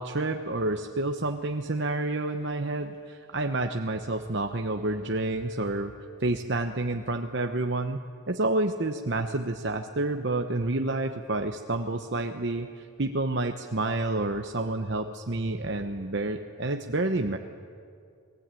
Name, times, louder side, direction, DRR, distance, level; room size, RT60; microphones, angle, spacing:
voice 1, 0.0-8.0 8.3-17.4, right 2 dB, 55° right, 5 dB, 1.0 m, -29 dB
29.0 x 20.0 x 9.1 m, 2.4 s
head